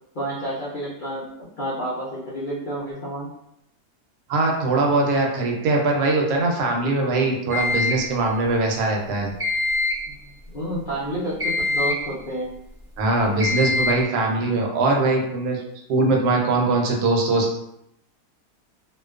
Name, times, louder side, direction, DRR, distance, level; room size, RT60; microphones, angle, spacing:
voice 1, 0.1-3.3 10.5-12.5, right 1 dB, 75° left, -8 dB, 0.4 m, -30 dB
voice 2, 4.3-9.3 13.0-15.6 15.9-17.5, right 2 dB, 80° right, 0 dB, 1.1 m, -21 dB
sound 1, 7.5-8.1 9.4-10.1 11.4-12.1 13.4-14.0, left 2 dB, 35° right, 0.5 m, -24 dB
2.5 x 2.2 x 2.3 m, 0.79 s
omnidirectional pair, 1.7 m